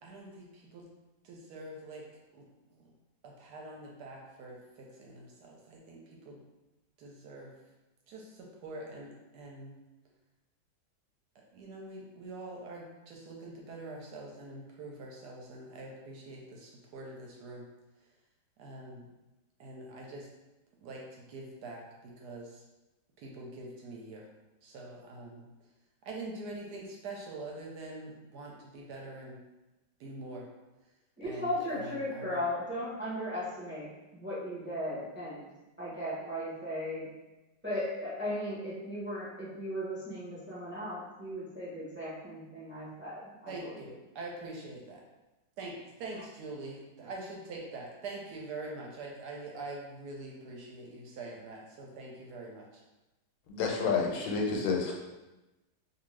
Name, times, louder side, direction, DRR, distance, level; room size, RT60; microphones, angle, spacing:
voice 1, 0.0-0.9 1.2-2.0 2.3-2.4 2.8-2.9 3.2-4.6 5.0-6.0 6.2-6.4 7.0-7.5 8.1-9.7 11.5-17.6 18.6-19.1 19.6-20.3 20.8-22.6 23.2-24.3 24.6-25.4 26.0-29.4 30.0-30.5 31.2-32.4 43.5-45.0 45.6-45.7 46.0-52.8, right 2 dB, 75° right, -1 dB, 1.1 m, -44 dB
voice 2, 31.2-35.4 35.8-37.1 37.6-43.9, left 1 dB, 10° right, -9 dB, 0.5 m, -37 dB
voice 3, 53.5-54.9, left 5 dB, 90° left, 0 dB, 1.3 m, -29 dB
2.6 x 2.6 x 3.1 m, 1.0 s
omnidirectional pair, 1.9 m